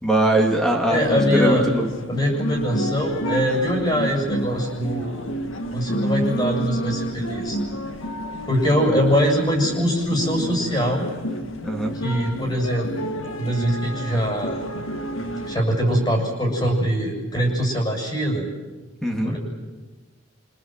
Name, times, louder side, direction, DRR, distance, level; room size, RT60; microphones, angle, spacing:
voice 1, 0.0-1.9 11.6-12.0 19.0-19.4, right 1 dB, ahead, 1 dB, 3.0 m, -21 dB
sound 1, 0.9-15.6, equal, 75° left, 2.1 m, -29 dB
voice 2, 0.9-1.7 2.1-5.2 5.7-7.6 8.5-11.1 11.9-13.1 13.4-14.6 15.4-18.5 19.2-19.4, equal, 20° left, 0 dB, 7.3 m, -23 dB
27.0 x 26.0 x 7.8 m, 1.2 s
head